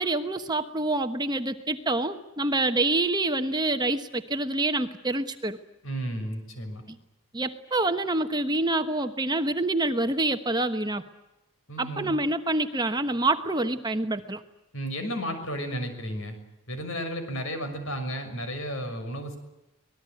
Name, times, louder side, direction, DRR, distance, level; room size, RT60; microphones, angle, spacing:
voice 1, 0.0-5.6 7.3-11.0 11.8-14.4, right 2 dB, 20° right, 8 dB, 1.1 m, -27 dB
voice 2, 5.8-6.8 11.7-12.1 14.7-16.4 16.7-19.4, equal, 65° left, 7 dB, 6.3 m, -33 dB
25.5 x 19.5 x 9.3 m, 0.96 s
head